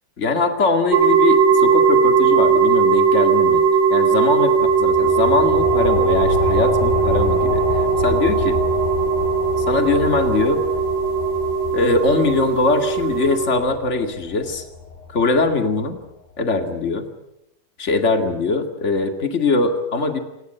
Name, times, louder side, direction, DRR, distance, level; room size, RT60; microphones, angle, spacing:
voice 1, 0.2-3.6 3.9-7.6 8.0-8.6 9.7-10.6 11.7-14.6 15.1-16.0 16.4-17.1 17.8-20.2, left 3 dB, 25° left, 6 dB, 1.6 m, -21 dB
sound 1, 0.9-13.5, right 5 dB, 75° right, 4.2 m, -18 dB
sound 2, 4.6-15.8, left 5 dB, 65° left, 4.0 m, -28 dB
27.5 x 19.5 x 7.9 m, 0.86 s
omnidirectional pair, 4.5 m